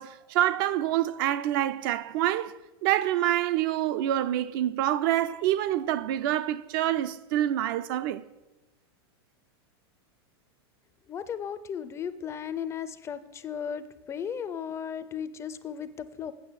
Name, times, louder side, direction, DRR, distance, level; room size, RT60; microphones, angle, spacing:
voice 1, 0.0-2.5 2.8-8.2, right 12 dB, 55° right, 0.5 m, -26 dB
voice 2, 11.1-16.3, left 8 dB, 20° left, 0.4 m, -35 dB
8.4 x 6.0 x 7.3 m
supercardioid pair, 135°, 13 cm